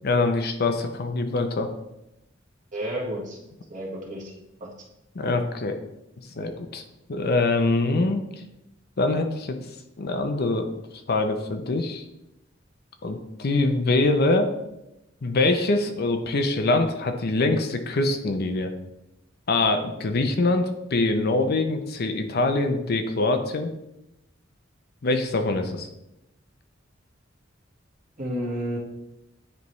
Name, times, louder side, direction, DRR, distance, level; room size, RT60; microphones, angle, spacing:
voice 1, 0.0-1.7 5.2-5.8 6.4-6.8 7.1-8.2 9.0-9.6 10.0-10.7 11.1-12.0 13.0-14.5 15.2-18.7 19.5-23.7 25.0-25.9, left 2 dB, 55° left, 6 dB, 0.6 m, -24 dB
voice 2, 2.7-3.4 3.7-4.3 4.6-4.7 28.2-28.8, equal, 40° right, -4 dB, 1.8 m, -31 dB
9.5 x 3.4 x 3.1 m, 0.88 s
head